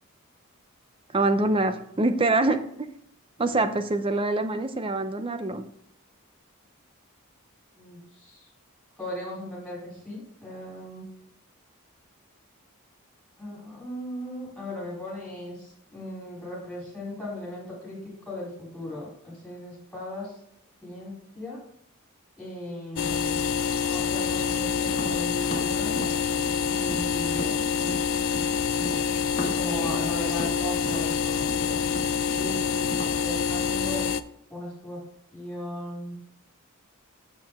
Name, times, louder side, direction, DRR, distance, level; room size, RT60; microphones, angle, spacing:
voice 1, 1.1-2.9 3.4-5.7, right 2 dB, 25° right, 9 dB, 0.6 m, -25 dB
voice 2, 7.8-8.5 9.0-11.0 13.4-20.3 20.8-21.6 22.4-23.5 23.9-26.0 26.7-28.0 29.4-31.8 32.3-32.8 33.2-34.0 34.5-35.0 35.3-36.2, left 1 dB, ahead, -6 dB, 3.5 m, -37 dB
sound 1, 23.0-34.2, left 6 dB, 65° left, 0.4 m, -26 dB
Tap, 24.9-28.5 28.8-33.2, equal, 30° left, 1.5 m, -37 dB
7.7 x 6.7 x 3.5 m, 0.71 s
head